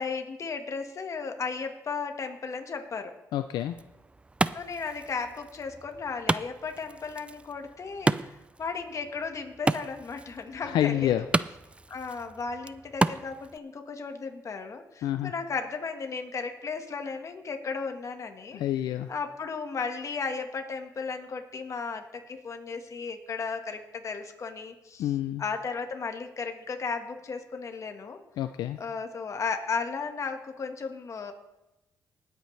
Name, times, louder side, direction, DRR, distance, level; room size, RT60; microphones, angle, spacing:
voice 1, 0.0-3.1 4.5-11.3 11.9-18.6 19.1-25.1 25.4-28.2 28.8-31.3, left 5 dB, 45° left, 5 dB, 1.6 m, -35 dB
voice 2, 3.3-3.7 10.7-11.2 15.0-15.3 18.5-19.1 25.0-25.4 28.4-28.8, left 12 dB, 85° left, 9 dB, 0.4 m, -28 dB
Wood, 3.6-13.6, right 2 dB, 15° right, 0.4 m, -33 dB
19.5 x 8.2 x 3.3 m, 0.94 s
cardioid pair, 80°, 7 cm